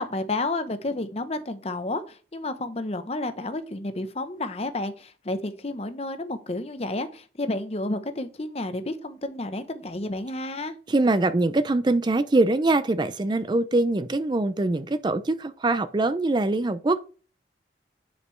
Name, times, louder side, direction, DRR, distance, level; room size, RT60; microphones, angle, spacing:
voice 1, 0.0-10.7, left 2 dB, 35° left, 0.7 m, -31 dB
voice 2, 10.9-17.0, right 2 dB, 25° right, 0.4 m, -23 dB
9.7 x 5.2 x 3.2 m
head